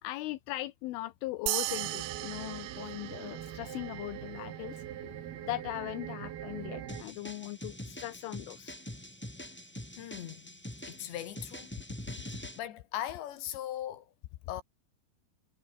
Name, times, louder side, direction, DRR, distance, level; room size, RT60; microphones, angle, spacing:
voice 1, 0.0-4.8 5.4-8.8 12.3-12.4, left 17 dB, 80° left, 3.5 m, -39 dB
sound 1, 1.5-4.2, right 19 dB, 80° right, 2.9 m, -37 dB
sound 2, 1.7-7.0, right 10 dB, 60° right, 3.5 m, -43 dB
sound 3, 6.9-12.6, left 1 dB, 15° left, 0.4 m, -44 dB
voice 2, 10.0-10.6 10.9-11.7 12.2-14.1 14.5-14.6, left 12 dB, 65° left, 4.3 m, -39 dB
omnidirectional pair, 5.7 m